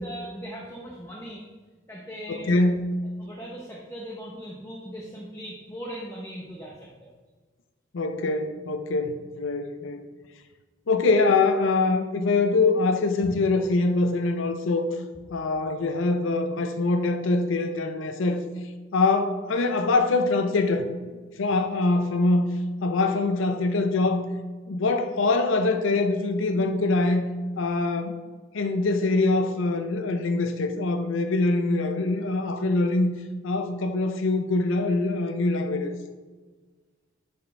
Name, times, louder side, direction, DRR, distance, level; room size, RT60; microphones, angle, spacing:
voice 1, 0.0-1.5 1.9-2.5 3.2-7.1 13.2-13.4, equal, 15° left, -3 dB, 0.7 m, -39 dB
voice 2, 2.4-2.9 7.9-10.0 10.9-14.9 15.3-18.5 18.9-20.9 21.4-22.4 22.8-24.2 24.7-27.3 27.6-28.2 28.5-33.1 33.4-35.9, left 3 dB, 85° left, 7 dB, 0.5 m, -24 dB
10.0 x 4.2 x 3.3 m, 1.4 s
head